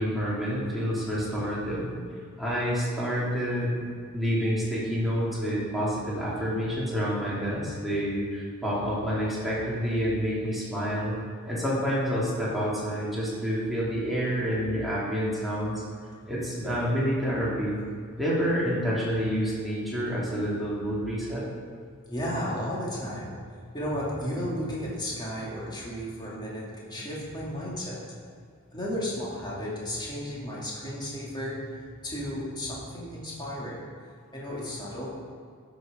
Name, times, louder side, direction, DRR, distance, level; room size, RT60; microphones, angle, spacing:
voice 1, 0.0-1.9 2.4-11.2 11.4-15.8 16.2-17.8 18.2-21.4, equal, ahead, -8 dB, 2.8 m, -28 dB
voice 2, 22.1-28.0 28.7-33.9 34.3-35.1, equal, 20° left, -6 dB, 2.6 m, -34 dB
12.0 x 6.5 x 5.2 m, 2.1 s
head